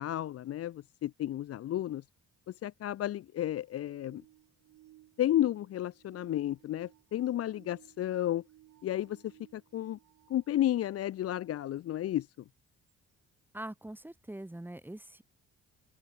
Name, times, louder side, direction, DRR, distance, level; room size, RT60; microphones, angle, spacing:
voice 1, 0.0-2.0 2.5-4.2 5.2-8.4 8.8-10.0 10.3-12.3, left 12 dB, 55° left, 0.5 m, -32 dB
sound 1, 3.4-11.1 11.8-11.9 12.9-13.0, right 15 dB, 90° right, 5.5 m, -61 dB
voice 2, 13.5-15.2, right 1 dB, 5° right, 1.1 m, -43 dB
open air
cardioid pair, 90°, 30 cm